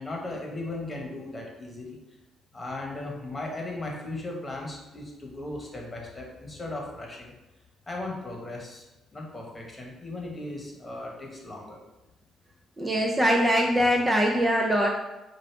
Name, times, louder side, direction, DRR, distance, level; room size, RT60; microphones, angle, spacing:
voice 1, 0.0-2.0 2.5-7.3 7.9-8.8 9.1-11.8, left 2 dB, 20° left, -1 dB, 1.2 m, -37 dB
voice 2, 12.8-14.9, equal, 20° right, 0 dB, 0.5 m, -22 dB
4.7 x 2.5 x 4.6 m, 1.0 s
cardioid pair, 90°, 0 cm